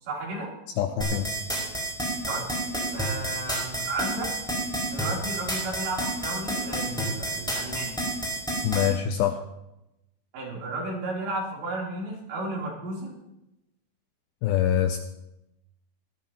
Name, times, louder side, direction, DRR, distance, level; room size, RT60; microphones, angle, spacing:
voice 1, 0.1-0.5 2.3-2.4 2.9-4.3 4.9-8.0 10.3-13.1, right 2 dB, 90° right, -4 dB, 5.8 m, -33 dB
voice 2, 0.8-1.3 8.6-9.4 14.4-15.0, left 10 dB, 85° left, 7 dB, 2.1 m, -24 dB
sound 1, 1.0-8.9, right 1 dB, ahead, 4.7 m, -29 dB
18.5 x 13.5 x 3.0 m, 0.91 s
omnidirectional pair, 4.9 m